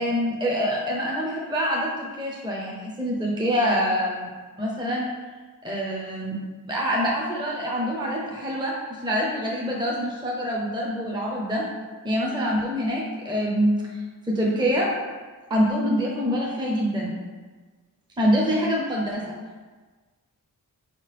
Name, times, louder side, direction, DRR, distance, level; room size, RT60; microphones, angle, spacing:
voice 1, 0.0-4.3 4.6-5.1 5.6-6.4 6.7-11.6 12.0-13.8 14.3-15.0 15.5-17.2 18.2-19.2, equal, 10° right, -3 dB, 0.6 m, -25 dB
4.2 x 2.9 x 3.3 m, 1.4 s
wide cardioid pair, 65°, 37 cm